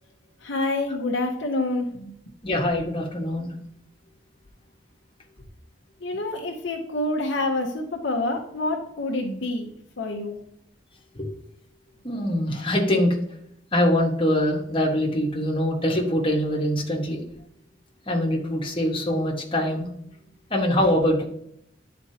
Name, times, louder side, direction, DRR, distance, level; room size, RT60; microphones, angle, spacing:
voice 1, 0.4-2.1 6.0-9.7 10.0-10.4, left 2 dB, 65° left, 2 dB, 0.9 m, -27 dB
voice 2, 2.4-3.5 11.1-11.3 12.0-13.1 13.7-17.2 18.1-19.9 20.5-21.2, left 1 dB, 25° left, -2 dB, 1.5 m, -23 dB
10.5 x 4.3 x 2.9 m, 0.73 s
head